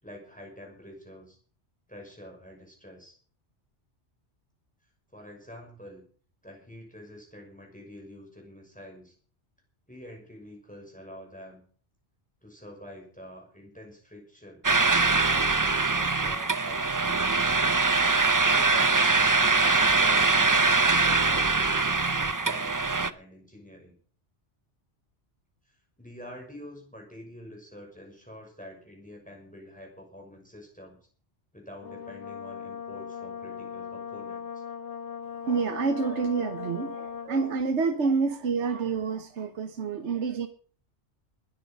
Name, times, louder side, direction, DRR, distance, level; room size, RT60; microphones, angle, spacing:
voice 1, 0.0-1.4 1.9-3.2 5.1-6.0 6.4-9.1 9.9-11.6 12.4-17.4 18.5-22.0 22.4-24.0 25.6-31.0 31.5-34.6, equal, 5° left, 6.2 m, -47 dB
sound 1, 14.6-23.1, right 3 dB, 25° right, 0.5 m, -23 dB
Brass instrument, 31.8-37.7, left 7 dB, 75° left, 1.6 m, -39 dB
voice 2, 35.4-40.5, right 5 dB, 80° right, 1.4 m, -28 dB
20.5 x 9.1 x 5.3 m
omnidirectional pair, 1.2 m